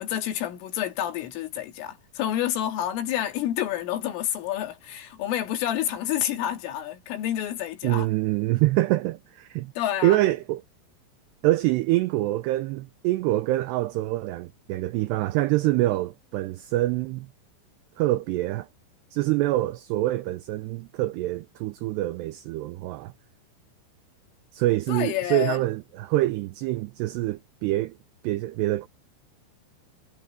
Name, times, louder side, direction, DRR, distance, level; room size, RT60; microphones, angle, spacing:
voice 1, 0.0-8.1 9.8-10.2 24.9-25.6, left 11 dB, 90° left, 4.7 m, -29 dB
voice 2, 7.8-9.7 10.0-10.6 11.4-17.3 18.0-18.7 19.1-23.1 24.5-28.0 28.2-28.9, right 17 dB, 90° right, 2.4 m, -25 dB
omnidirectional pair, 5.6 m